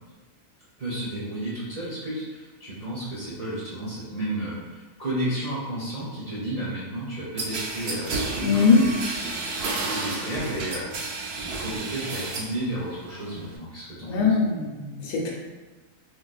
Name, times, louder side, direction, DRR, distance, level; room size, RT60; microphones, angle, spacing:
voice 1, 0.8-14.3, right 1 dB, 40° right, -9 dB, 0.6 m, -33 dB
sound 1, 7.4-12.6 12.9-13.6, right 3 dB, 80° right, 0.5 m, -31 dB
voice 2, 8.4-8.8 14.0-15.3, left 5 dB, 90° left, -3 dB, 1.2 m, -21 dB
4.1 x 2.4 x 2.3 m, 1.3 s
omnidirectional pair, 1.6 m